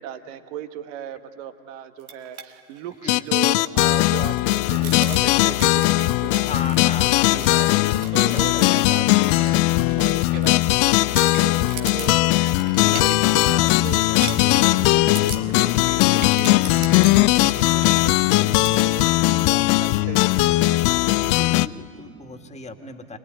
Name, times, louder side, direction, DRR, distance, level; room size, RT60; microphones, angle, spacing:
voice 1, 0.0-20.7, right 10 dB, 60° right, 9 dB, 1.7 m, -37 dB
sound 1, 2.0-2.5 2.8-2.9 3.3-10.7 11.1-19.0, right 7 dB, 80° right, 1.9 m, -39 dB
sound 2, 3.1-21.7, left 19 dB, 45° left, 0.6 m, -19 dB
voice 2, 6.4-8.7 21.0-23.2, left 3 dB, 15° left, 6 dB, 2.1 m, -37 dB
sound 3, 10.4-11.2 11.8-21.6, right 3 dB, 15° right, 2.2 m, -43 dB
26.0 x 20.5 x 9.7 m, 2.4 s
hypercardioid pair, 85°, 42 cm